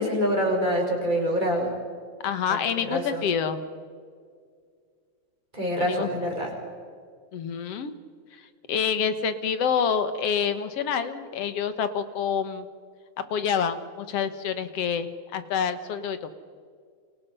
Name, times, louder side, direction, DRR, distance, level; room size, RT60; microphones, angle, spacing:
voice 1, 0.0-1.7 2.9-3.2 5.5-6.5, equal, 15° right, -1 dB, 5.8 m, -25 dB
voice 2, 2.2-3.6 5.8-6.3 7.3-7.9 8.7-12.7 13.3-16.3, left 7 dB, 60° left, 11 dB, 2.1 m, -27 dB
29.5 x 28.5 x 5.6 m, 2.1 s
omnidirectional pair, 3.5 m